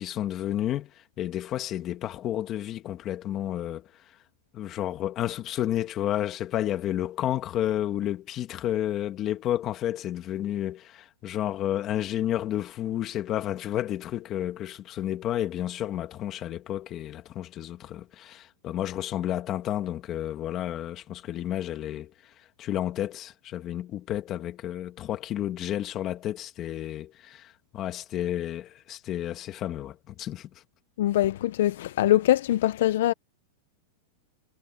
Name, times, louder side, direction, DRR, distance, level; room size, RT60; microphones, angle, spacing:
voice 1, 0.0-4.2 4.5-30.5, left 12 dB, 25° left, 2.0 m, -31 dB
voice 2, 31.0-33.1, left 13 dB, 60° left, 0.5 m, -23 dB
supercardioid pair, 165°, 0 cm